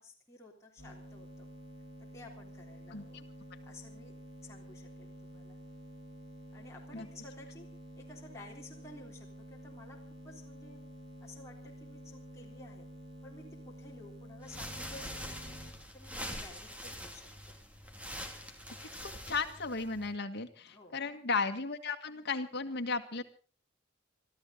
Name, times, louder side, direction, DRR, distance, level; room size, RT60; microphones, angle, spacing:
voice 1, 0.0-1.5 2.1-3.2 3.6-4.1 4.4-5.6 6.5-7.7 8.0-10.0 10.2-10.8 11.2-12.9 13.2-15.6 15.9-17.6 20.7-21.0, left 2 dB, 15° left, -3 dB, 3.5 m, -53 dB
sound 1, 0.8-15.7, equal, 65° right, 6.2 m, -50 dB
voice 2, 2.9-3.2 6.9-7.1 19.0-23.2, left 4 dB, 60° left, 6 dB, 1.8 m, -35 dB
sound 2, 14.4-20.1, equal, 5° right, 2.4 m, -44 dB
25.5 x 13.5 x 3.9 m, 0.35 s
head